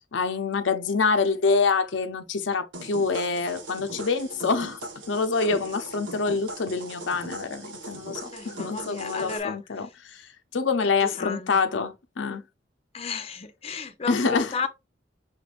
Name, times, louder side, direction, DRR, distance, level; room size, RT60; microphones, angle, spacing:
voice 1, 0.1-4.8 5.1-12.4 14.1-14.5, left 4 dB, 75° left, 0.6 m, -26 dB
sound 1, 2.7-9.4, right 2 dB, 90° right, 1.1 m, -40 dB
voice 2, 8.3-9.9 10.8-11.6 12.9-14.7, left 5 dB, 35° left, 0.7 m, -34 dB
5.7 x 3.3 x 2.4 m
head